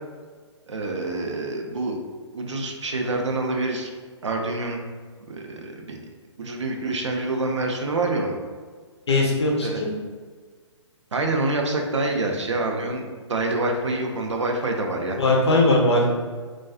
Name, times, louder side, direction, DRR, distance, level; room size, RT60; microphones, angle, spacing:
voice 1, 0.7-2.0 2.3-3.9 4.2-4.8 5.3-6.0 6.4-8.3 9.6-9.8 11.1-15.2, right 2 dB, 70° right, 2 dB, 0.5 m, -26 dB
voice 2, 9.1-9.9 15.2-16.1, left 2 dB, 60° left, -2 dB, 0.7 m, -19 dB
2.4 x 2.3 x 2.3 m, 1.5 s
figure-of-eight pair, 130°, 16 cm